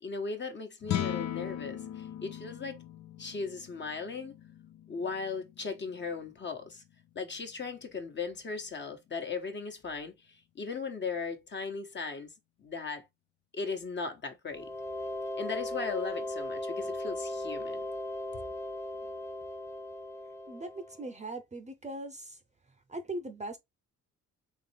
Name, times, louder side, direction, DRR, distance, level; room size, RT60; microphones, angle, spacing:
voice 1, 0.0-2.8 3.2-4.3 4.9-6.8 7.1-12.3 12.6-13.0 13.5-14.7 15.4-17.8, left 4 dB, 35° left, 1.2 m, -37 dB
sound 1, 0.8-7.2, left 11 dB, 65° left, 0.6 m, -39 dB
sound 2, 14.5-21.1, left 1 dB, 10° left, 0.3 m, -38 dB
voice 2, 20.5-22.4 22.9-23.6, right 2 dB, 25° right, 0.6 m, -40 dB
3.7 x 3.2 x 3.3 m
cardioid pair, 90°, 30 cm